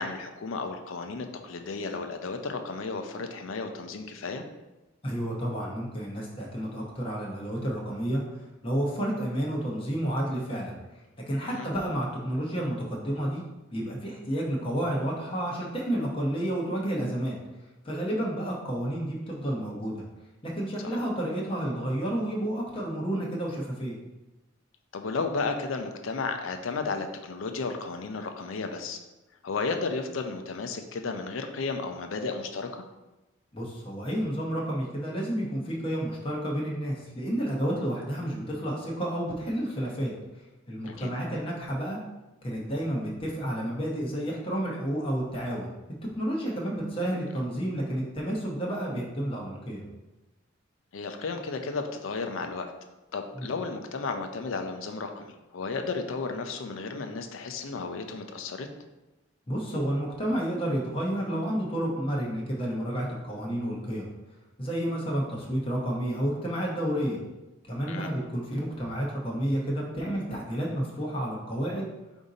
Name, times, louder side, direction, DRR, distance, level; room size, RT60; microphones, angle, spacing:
voice 1, 0.0-4.4 11.4-11.7 20.8-21.0 24.9-29.0 29.4-32.8 40.9-41.1 50.9-52.7 53.1-58.7 67.9-68.1, left 4 dB, 80° left, 6 dB, 0.5 m, -33 dB
voice 2, 5.0-10.8 11.3-13.4 13.7-17.4 17.8-20.0 20.4-24.0 33.5-40.1 40.7-42.0 42.4-45.7 46.1-49.9 53.3-53.5 59.5-64.1 64.6-67.2 67.7-71.9, equal, 25° left, -3 dB, 0.8 m, -30 dB
5.1 x 2.6 x 4.0 m, 1.0 s
head